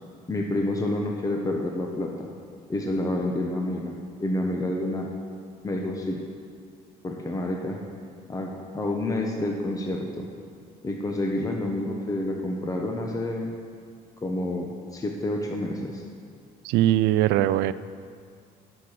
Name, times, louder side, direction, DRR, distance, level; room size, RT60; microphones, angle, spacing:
voice 1, 0.3-2.3 2.7-3.9 4.2-5.1 5.6-6.2 7.0-7.8 8.3-10.3 10.8-13.5 14.2-16.0, left 1 dB, 20° left, 1 dB, 1.1 m, -28 dB
voice 2, 16.6-17.7, right 13 dB, 90° right, 15 dB, 0.4 m, -21 dB
11.5 x 6.8 x 6.0 m, 2.2 s
cardioid pair, 110°, 17 cm